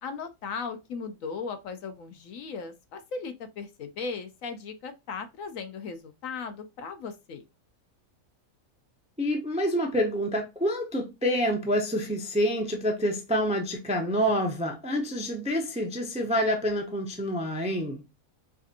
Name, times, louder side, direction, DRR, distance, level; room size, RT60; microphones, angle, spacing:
voice 1, 0.0-7.4, left 5 dB, 70° left, 0.9 m, -37 dB
voice 2, 9.2-18.0, equal, 10° right, 0.4 m, -27 dB
4.9 x 2.5 x 2.7 m
omnidirectional pair, 1.6 m